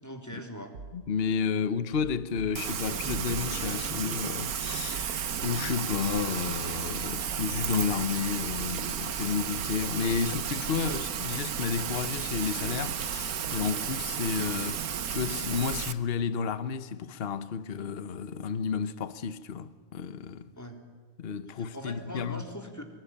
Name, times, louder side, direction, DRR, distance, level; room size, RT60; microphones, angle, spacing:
voice 1, 0.0-0.7 20.6-20.8 21.5-22.8, equal, 10° left, 3.6 m, -41 dB
sound 1, 0.7-1.4 1.9-3.0 3.3-3.9 4.5-6.5 7.1-8.1 8.5-9.1 9.6-11.1, right 4 dB, 60° right, 1.5 m, -48 dB
voice 2, 0.9-20.5 21.2-22.4, left 6 dB, 45° left, 1.2 m, -32 dB
Rain, 2.5-15.9, right 8 dB, 85° right, 1.5 m, -33 dB
26.0 x 22.0 x 9.9 m
omnidirectional pair, 1.5 m